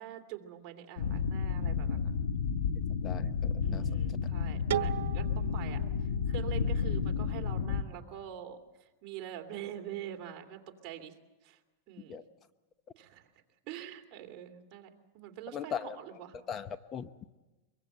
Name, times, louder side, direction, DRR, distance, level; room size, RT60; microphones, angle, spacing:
voice 1, 0.0-2.1 3.6-11.2 11.4-11.6 11.9-12.2 13.0-13.3 13.6-16.3, right 11 dB, 40° right, 3 dB, 2.7 m, -45 dB
sound 1, 1.0-7.8, left 6 dB, 80° left, 1.4 m, -31 dB
voice 2, 3.0-3.9 12.1-12.2 15.5-16.0 16.5-17.3, left 8 dB, 25° left, 12 dB, 0.8 m, -39 dB
sound 2, 4.7-7.5, right 11 dB, 80° right, 1.1 m, -38 dB
24.0 x 23.0 x 7.9 m, 1.1 s
supercardioid pair, 145°, 0 cm